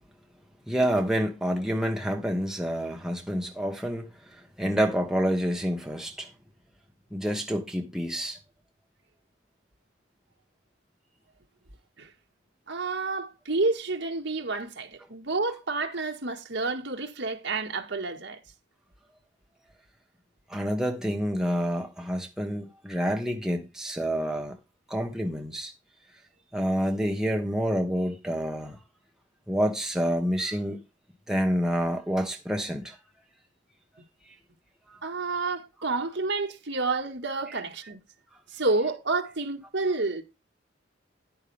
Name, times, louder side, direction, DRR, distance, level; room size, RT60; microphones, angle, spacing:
voice 1, 0.7-6.3 7.1-8.4 20.5-24.5 24.9-25.7 26.5-28.8 29.5-30.8 31.3-33.0 34.9-35.0, equal, 5° right, 1.2 m, -28 dB
voice 2, 12.7-18.4 35.0-38.0 38.5-40.2, right 3 dB, 65° right, 1.8 m, -29 dB
10.0 x 8.9 x 3.5 m
head